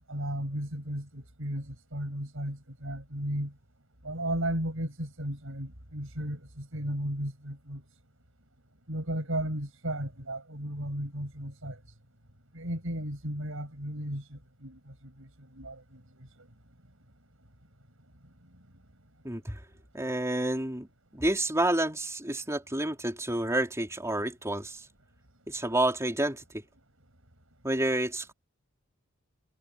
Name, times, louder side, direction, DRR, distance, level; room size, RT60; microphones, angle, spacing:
voice 1, 0.1-3.5 4.0-7.8 8.9-11.8 12.5-16.3, right 1 dB, 70° right, 7.9 m, -35 dB
voice 2, 19.2-19.6 19.9-20.9 21.1-24.8 25.5-26.6 27.6-28.3, right 1 dB, 15° right, 4.2 m, -29 dB
head